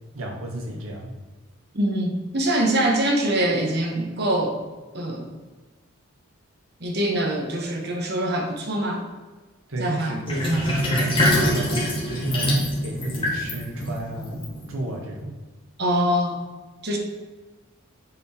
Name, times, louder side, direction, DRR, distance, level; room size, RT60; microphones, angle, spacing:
voice 1, 0.1-1.1 9.7-14.4 14.7-15.4, right 1 dB, 80° right, 0 dB, 1.6 m, -31 dB
voice 2, 1.7-4.6 4.9-5.2 6.8-9.1 9.8-10.7 15.8-16.4 16.8-17.0, right 1 dB, 50° right, 2 dB, 1.2 m, -24 dB
Sink (filling or washing), 10.3-15.0, equal, 25° left, 1.7 m, -24 dB
7.7 x 4.4 x 4.4 m, 1.3 s
head